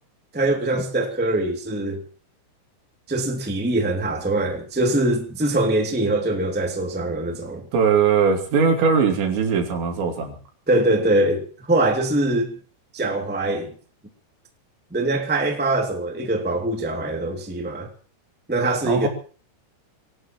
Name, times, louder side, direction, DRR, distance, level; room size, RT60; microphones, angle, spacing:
voice 1, 0.3-2.0 3.1-7.6 10.7-11.4 11.7-12.5 12.9-13.7 14.9-17.9 18.5-19.1, right 2 dB, 15° right, 0.4 m, -23 dB
voice 2, 7.7-10.4 18.8-19.1, right 6 dB, 70° right, 5.0 m, -20 dB
25.0 x 18.0 x 3.1 m
omnidirectional pair, 5.5 m